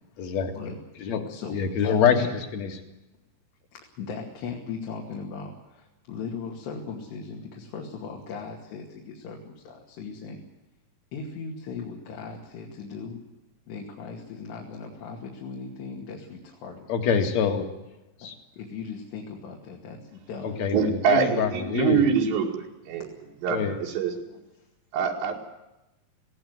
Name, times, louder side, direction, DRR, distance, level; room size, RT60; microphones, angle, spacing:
voice 1, 0.2-0.5 1.0-1.2 1.5-2.8 16.9-17.7 18.2-18.4 20.4-22.0 23.5-23.8, left 7 dB, 45° left, 5 dB, 2.7 m, -25 dB
voice 2, 1.3-2.3 3.7-10.4 11.1-13.2 13.7-16.9 18.2-20.7 23.0-23.2 24.1-24.2, left 5 dB, 70° left, -1 dB, 4.4 m, -38 dB
voice 3, 20.7-23.1 23.4-24.1 24.9-25.3, right 6 dB, 80° right, 0 dB, 4.6 m, -24 dB
19.0 x 17.0 x 9.5 m, 0.97 s
omnidirectional pair, 5.1 m